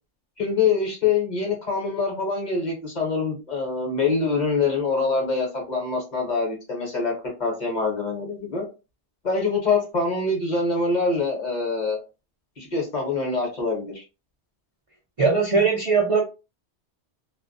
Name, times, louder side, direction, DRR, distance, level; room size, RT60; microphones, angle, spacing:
voice 1, 0.4-7.1 7.4-8.7 9.2-12.0 12.6-14.0, left 4 dB, 45° left, 0 dB, 0.9 m, -25 dB
voice 2, 15.2-16.2, right 4 dB, 50° right, -2 dB, 0.4 m, -20 dB
2.3 x 2.1 x 2.5 m, 0.30 s
omnidirectional pair, 1.2 m